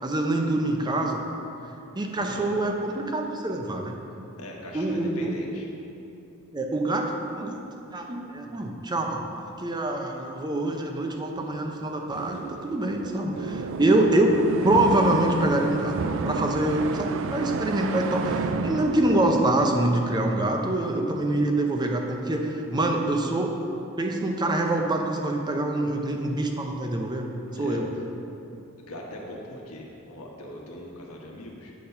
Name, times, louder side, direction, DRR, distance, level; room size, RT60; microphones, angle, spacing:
voice 1, 0.0-1.2 1.9-3.9 4.7-5.4 6.5-7.6 7.9-9.2 9.6-14.4 14.6-16.0 16.2-23.5 24.0-27.3 27.6-27.9, right 1 dB, 20° right, 2 dB, 0.6 m, -25 dB
voice 2, 2.2-2.5 4.4-5.7 27.5-27.8 28.8-31.7, left 1 dB, 85° left, -1 dB, 1.2 m, -40 dB
sound 1, 12.1-20.9, right 4 dB, 60° right, 0.4 m, -32 dB
8.5 x 4.1 x 5.7 m, 2.8 s
head